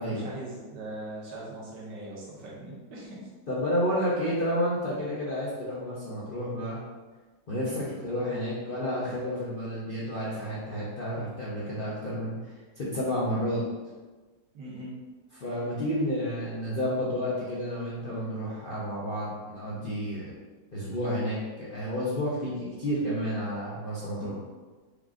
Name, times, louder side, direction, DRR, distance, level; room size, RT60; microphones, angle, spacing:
voice 1, 0.0-3.3 7.6-8.0 14.5-14.9 24.2-24.4, right 2 dB, 80° right, -5 dB, 1.7 m, -41 dB
voice 2, 3.5-6.8 7.5-13.6 15.3-20.3 20.7-24.4, equal, 50° left, -8 dB, 0.6 m, -31 dB
4.9 x 2.4 x 3.6 m, 1.3 s
omnidirectional pair, 1.9 m